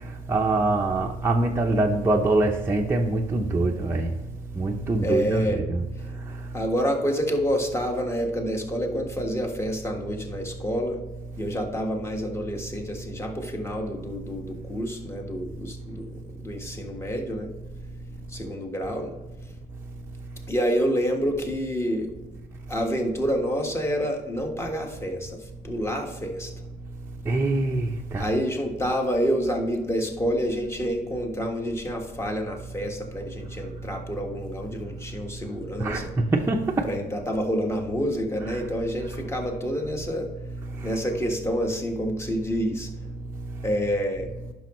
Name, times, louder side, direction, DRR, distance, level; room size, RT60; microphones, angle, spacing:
voice 1, 0.3-4.1 4.5-5.8 6.3-6.4 27.3-28.3 35.8-36.9 38.5-38.6 40.7-41.0, right 2 dB, 15° right, 0.7 m, -24 dB
voice 2, 5.0-5.6 6.5-11.0 11.4-17.5 18.3-19.1 20.5-22.3 22.7-25.4 25.6-26.5 28.2-36.1 36.8-40.3 40.8-42.9 43.6-44.3, equal, 15° left, 1.6 m, -28 dB
10.0 x 6.3 x 3.1 m
cardioid pair, 110°, 17 cm